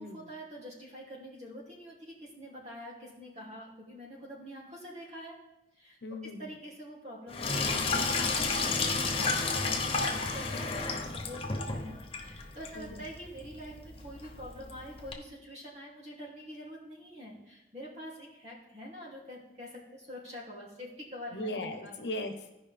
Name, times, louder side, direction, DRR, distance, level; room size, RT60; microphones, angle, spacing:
voice 1, 0.0-5.3 5.8-6.0 6.4-22.0, equal, 40° right, -4 dB, 2.7 m, -46 dB
voice 2, 6.0-6.6 12.7-13.1 21.3-22.5, left 1 dB, 80° left, 5 dB, 1.1 m, -38 dB
Sink (filling or washing), 7.3-15.1, left 4 dB, 30° left, 0.9 m, -32 dB
16.0 x 5.3 x 3.4 m, 0.93 s
head